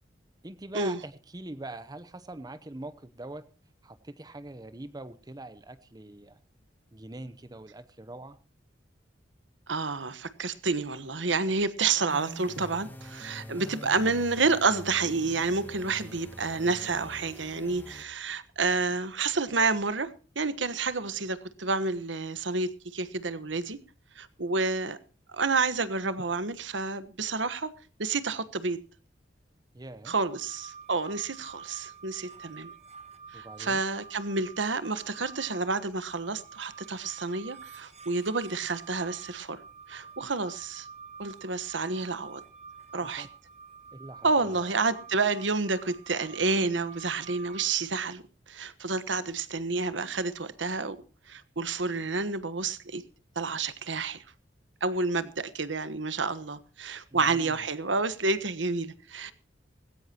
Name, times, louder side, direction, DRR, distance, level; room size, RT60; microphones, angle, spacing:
voice 1, 0.4-3.4 3.8-6.4 6.9-8.4 13.6-13.9 29.7-30.1 33.3-33.8 43.2-43.3 43.9-44.7 57.1-57.6, right 2 dB, 20° right, 0.8 m, -43 dB
voice 2, 9.7-23.8 24.2-25.0 25.3-27.7 28.0-28.8 30.1-32.7 33.3-39.6 39.9-40.9 41.2-42.4 42.9-43.3 44.2-48.2 48.5-51.0 51.3-53.0 53.3-54.2 54.8-59.3, right 4 dB, 80° right, 1.3 m, -29 dB
sound 1, 12.1-18.0, equal, 10° left, 2.1 m, -45 dB
sound 2, 30.1-47.7, right 5 dB, 35° right, 1.5 m, -48 dB
19.0 x 16.5 x 2.9 m
head